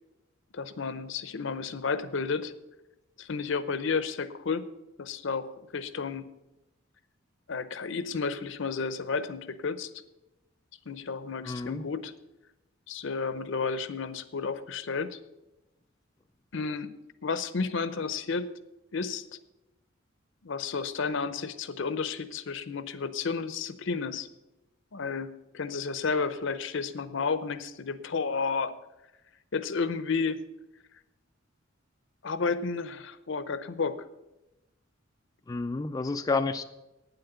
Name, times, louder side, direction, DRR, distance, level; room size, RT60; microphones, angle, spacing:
voice 1, 0.5-2.5 3.2-4.7 5.0-5.5 5.7-6.2 7.5-10.0 10.9-12.1 12.9-15.2 16.5-16.9 17.2-18.5 18.9-19.4 20.4-24.3 24.9-28.7 29.5-30.4 32.2-34.1, left 4 dB, 70° left, 13 dB, 0.7 m, -32 dB
voice 2, 11.4-11.8 35.5-36.6, left 3 dB, 20° left, 8 dB, 0.4 m, -30 dB
9.3 x 7.9 x 8.0 m, 0.98 s
head